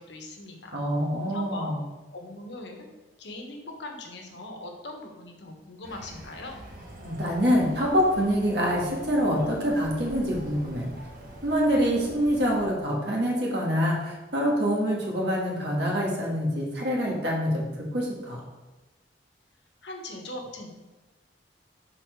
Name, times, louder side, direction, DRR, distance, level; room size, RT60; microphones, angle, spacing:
voice 1, 0.0-0.7 1.3-1.7 2.1-2.9 3.2-6.6 19.8-20.7, left 2 dB, 70° left, 2 dB, 1.1 m, -40 dB
voice 2, 0.7-1.8 7.0-10.9 11.4-18.4, equal, 65° right, -2 dB, 1.6 m, -25 dB
sound 1, 5.8-12.6, right 1 dB, 45° right, 1.1 m, -45 dB
6.3 x 4.3 x 4.6 m, 1.1 s
head